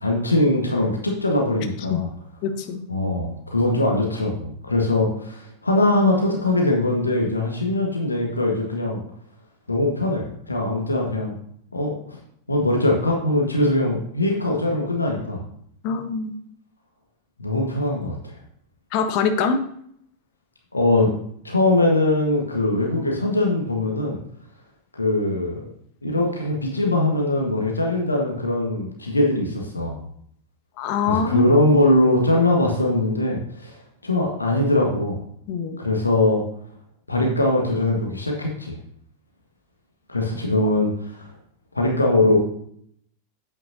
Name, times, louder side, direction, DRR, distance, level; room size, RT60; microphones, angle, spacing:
voice 1, 0.0-2.1 2.9-9.0 9.7-11.3 11.7-11.9 12.5-15.4 17.4-18.1 20.7-21.1 21.4-24.2 25.0-25.7 26.0-30.0 31.1-33.7 34.0-35.2 35.8-36.4 37.1-38.8 40.1-40.9 41.2-41.3 41.7-42.4, left 2 dB, 80° left, 0 dB, 1.5 m, -21 dB
voice 2, 2.4-2.8 15.8-16.3 18.9-19.6 30.8-31.4 35.5-35.8 40.5-40.7, left 5 dB, 45° left, 6 dB, 1.1 m, -24 dB
9.1 x 8.4 x 2.7 m, 0.67 s
figure-of-eight pair, 90°, 0 cm